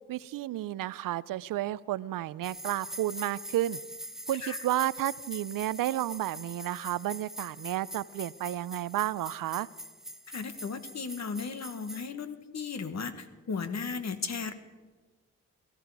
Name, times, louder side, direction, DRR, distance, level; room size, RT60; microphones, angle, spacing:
voice 1, 0.1-3.8 4.3-9.7, right 14 dB, 80° right, 19 dB, 0.5 m, -32 dB
sound 1, 2.4-12.1, equal, ahead, 0.9 m, -43 dB
voice 2, 10.3-14.5, left 5 dB, 55° left, 10 dB, 1.3 m, -36 dB
17.5 x 14.0 x 4.8 m, 1.3 s
cardioid pair, 65°, 33 cm